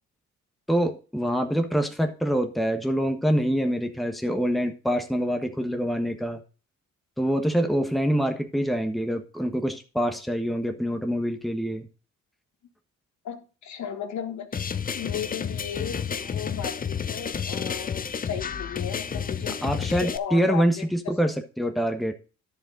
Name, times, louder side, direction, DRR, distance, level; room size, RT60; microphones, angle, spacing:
voice 1, 0.7-6.4 7.2-11.9 19.6-22.1, equal, ahead, 6 dB, 1.3 m, -25 dB
voice 2, 13.2-14.6 14.9-20.8, left 8 dB, 70° left, 6 dB, 1.7 m, -35 dB
sound 1, 14.5-20.2, left 7 dB, 30° left, 0.6 m, -31 dB
11.0 x 6.9 x 3.9 m, 0.35 s
cardioid pair, 90°, 30 cm